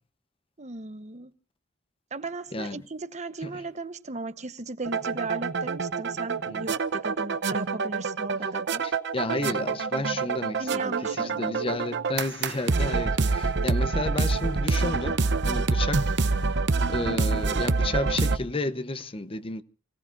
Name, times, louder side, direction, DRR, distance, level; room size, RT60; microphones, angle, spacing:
voice 1, 0.6-1.3 2.1-8.9 10.6-11.8, right 3 dB, 35° right, 1.0 m, -36 dB
voice 2, 2.5-2.8 3.4-3.6 6.5-6.6 8.8-16.5 16.8-19.6, left 2 dB, 30° left, 0.8 m, -32 dB
sound 1, 4.8-18.4, right 4 dB, 65° right, 0.8 m, -26 dB
29.5 x 18.0 x 2.6 m
head